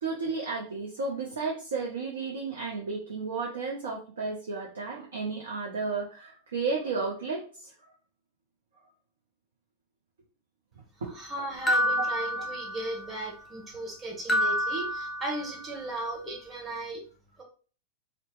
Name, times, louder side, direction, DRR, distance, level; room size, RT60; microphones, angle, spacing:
voice 1, 0.0-7.7 11.0-11.1 12.0-12.1, right 4 dB, 65° right, -2 dB, 0.6 m, -33 dB
voice 2, 11.0-17.0 17.4-17.5, right 1 dB, 20° right, -1 dB, 1.0 m, -36 dB
sound 1, 11.7-13.1 14.3-15.7, equal, 15° left, 0.4 m, -28 dB
2.7 x 2.1 x 3.0 m, 0.39 s
figure-of-eight pair, 90°, 0 cm